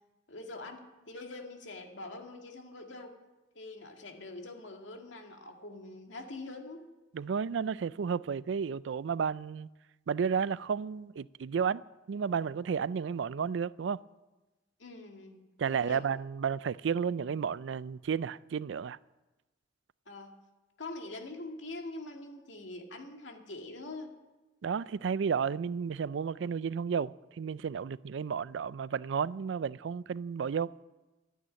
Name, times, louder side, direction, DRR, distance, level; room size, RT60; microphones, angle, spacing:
voice 1, 0.3-3.1 3.6-6.8 14.8-16.1 20.1-20.3 20.8-24.1, left 2 dB, 90° left, 2.1 m, -44 dB
voice 2, 7.1-9.7 10.1-11.8 12.1-14.0 15.6-19.0 24.6-30.7, right 6 dB, 80° right, 0.4 m, -32 dB
12.5 x 9.4 x 8.9 m
head